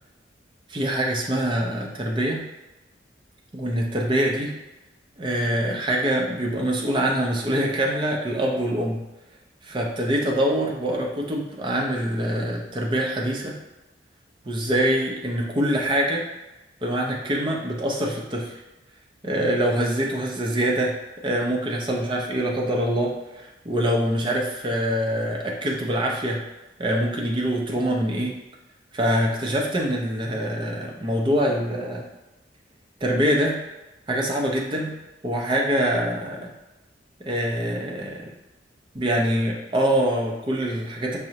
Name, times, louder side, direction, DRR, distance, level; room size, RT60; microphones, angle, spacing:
voice 1, 0.7-2.5 3.5-4.6 5.2-9.0 9.6-13.6 14.4-16.3 16.8-18.6 19.2-21.0 21.2-26.4 26.8-28.4 28.9-32.1 33.0-33.6 34.1-35.0 35.2-36.5 37.2-38.3 38.9-41.2, equal, 25° right, -1 dB, 0.5 m, -24 dB
5.9 x 2.0 x 2.8 m, 1.0 s
head